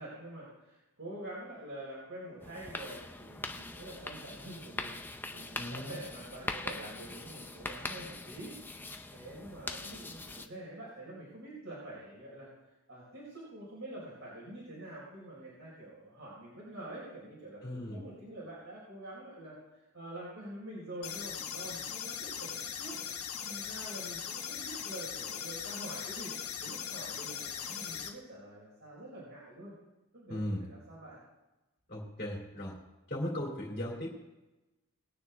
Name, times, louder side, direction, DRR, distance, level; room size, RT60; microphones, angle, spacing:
voice 1, 0.0-5.0 5.3-26.3 26.6-29.7 30.1-31.2, right 1 dB, 65° right, -6 dB, 4.5 m, -46 dB
sound 1, 2.4-10.5, left 2 dB, 10° left, 0.6 m, -42 dB
voice 2, 5.5-5.9 17.6-18.0 30.3-30.6 31.9-32.8 33.1-34.1, left 1 dB, 40° left, -3 dB, 2.8 m, -37 dB
sound 2, 21.0-28.1, left 8 dB, 90° left, 1.3 m, -40 dB
20.0 x 9.5 x 3.5 m, 1.0 s
head